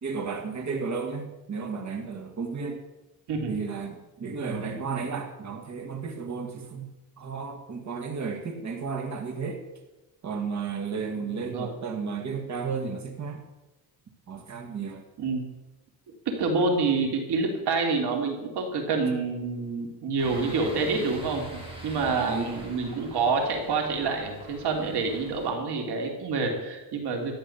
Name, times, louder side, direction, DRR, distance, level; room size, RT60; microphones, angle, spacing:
voice 1, 0.0-2.8 3.5-6.9 7.2-9.6 10.2-13.4 14.3-15.0 22.3-22.6, right 5 dB, 45° right, 3 dB, 2.0 m, -33 dB
voice 2, 3.3-3.6 11.5-11.7 15.2-15.4 16.2-27.3, right 4 dB, 75° right, 2 dB, 3.2 m, -27 dB
sound 1, 20.2-25.5, right 1 dB, 15° right, 5.0 m, -43 dB
13.5 x 10.5 x 7.2 m, 1.0 s
cardioid pair, 130°, 40 cm